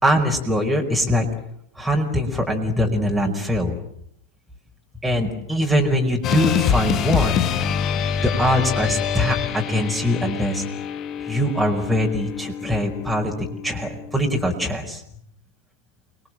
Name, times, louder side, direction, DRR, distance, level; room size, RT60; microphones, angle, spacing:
voice 1, 0.0-1.3 1.7-3.8 5.0-7.5 8.2-10.6 11.2-15.0, equal, ahead, -1 dB, 5.1 m, -22 dB
sound 1, 6.2-14.6, left 8 dB, 35° left, 1.8 m, -26 dB
29.5 x 22.5 x 7.7 m, 0.73 s
figure-of-eight pair, 90°, 0 cm